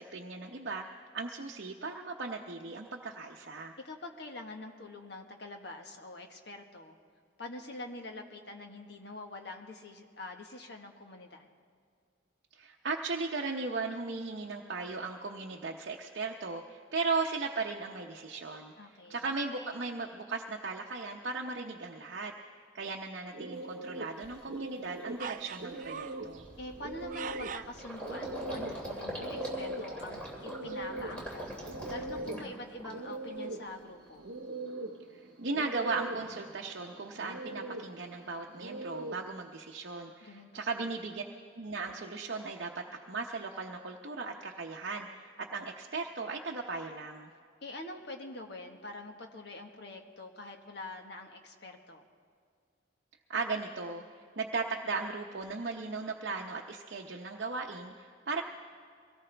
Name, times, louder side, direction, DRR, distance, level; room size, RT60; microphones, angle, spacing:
voice 1, 0.0-3.7 12.5-18.7 19.1-22.3 22.7-26.5 35.1-41.2 41.5-47.3 53.3-54.0 54.4-58.4, right 4 dB, 60° right, 0 dB, 0.8 m, -37 dB
voice 2, 3.8-6.9 7.4-11.5 18.8-19.3 26.6-31.5 31.9-34.2 40.2-40.6 47.6-52.0, left 2 dB, 55° left, 3 dB, 1.4 m, -45 dB
sound 1, 23.3-39.4, right 2 dB, 85° right, 0.9 m, -42 dB
Gurgling, 23.6-23.7 24.2-24.5 24.9-25.0 25.3-33.3 33.6-34.3, equal, 5° left, 2.9 m, -42 dB
sound 2, 25.2-26.3 26.8-27.8 29.4-29.8 30.1-30.2 30.4-30.5 31.1-31.3 32.0-33.0 33.4-33.5, right 8 dB, 40° right, 0.3 m, -43 dB
23.5 x 18.0 x 3.4 m, 2.2 s
head